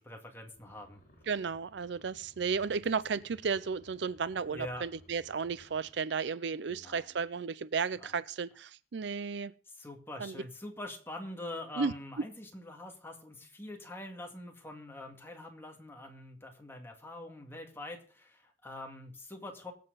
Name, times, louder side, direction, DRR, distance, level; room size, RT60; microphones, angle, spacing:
voice 1, 0.1-1.0 4.4-4.8 6.7-7.1 8.0-8.1 9.7-19.7, left 1 dB, 15° left, 2.2 m, -44 dB
sound 1, 0.5-5.9, equal, 50° left, 5.3 m, -60 dB
voice 2, 1.3-9.5 10.2-10.4 11.8-11.9, right 5 dB, 65° right, 0.5 m, -34 dB
22.5 x 7.7 x 4.0 m
head